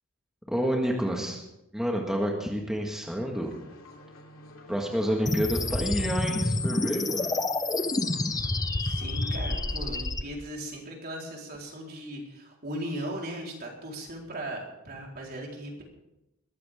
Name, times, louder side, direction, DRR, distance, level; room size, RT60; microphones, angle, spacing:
voice 1, 0.5-1.4 1.7-3.5 4.7-7.4, equal, 5° right, 0 dB, 1.7 m, -29 dB
sound 1, 3.2-9.9, left 1 dB, 75° left, 3.0 m, -50 dB
sound 2, 5.3-10.2, left 2 dB, 15° left, 0.8 m, -28 dB
voice 2, 8.8-15.8, right 1 dB, 50° right, -1 dB, 4.3 m, -38 dB
21.5 x 14.5 x 3.7 m, 0.91 s
head